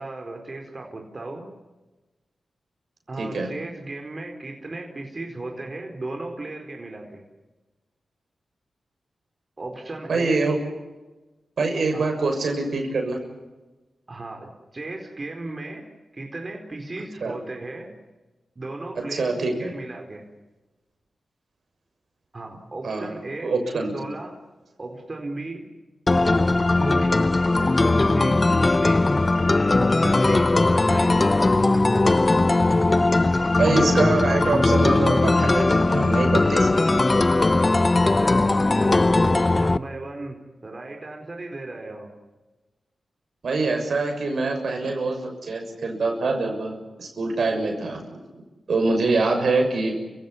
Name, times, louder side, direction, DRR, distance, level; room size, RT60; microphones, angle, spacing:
voice 1, 0.0-1.4 3.1-7.2 9.6-10.4 11.9-12.1 14.1-15.9 16.1-17.9 18.6-20.3 22.3-23.5 23.9-24.3 24.8-25.6 26.1-26.5 26.8-27.2 27.5-29.1 29.6-31.3 38.0-42.1 49.0-49.2, right 2 dB, 40° right, 2 dB, 4.4 m, -35 dB
voice 2, 3.2-3.5 10.1-10.6 11.6-13.2 17.2-17.3 19.1-19.7 22.8-23.1 23.4-23.9 33.6-36.7 43.4-48.0 48.7-50.0, right 3 dB, 70° right, 4 dB, 6.5 m, -24 dB
sound 1, 26.1-39.8, left 2 dB, 30° left, 0.8 m, -19 dB
29.5 x 17.0 x 9.8 m, 1.2 s
cardioid pair, 65°, 0 cm